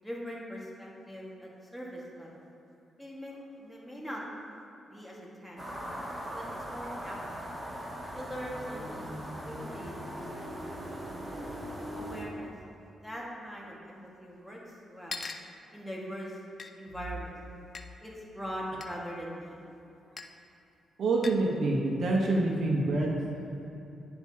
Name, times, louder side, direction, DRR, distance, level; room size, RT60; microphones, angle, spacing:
voice 1, 0.0-2.5 3.0-4.2 4.9-5.7 6.3-7.5 8.1-10.2 10.5-10.7 11.9-12.5 13.0-14.6 14.9-15.2 15.7-16.4 16.8-17.3 18.0-19.5, equal, ahead, -4 dB, 1.5 m, -42 dB
sound 1, 5.6-12.2, equal, 20° right, 1.5 m, -39 dB
sound 2, 15.1-15.5 16.6-16.7 17.7-17.9 18.8-19.0 20.2-20.3 21.2-21.5, left 4 dB, 45° left, 0.4 m, -40 dB
voice 2, 21.0-23.7, right 2 dB, 65° right, -2 dB, 1.0 m, -27 dB
10.5 x 4.8 x 2.8 m, 2.8 s
cardioid pair, 65°, 0 cm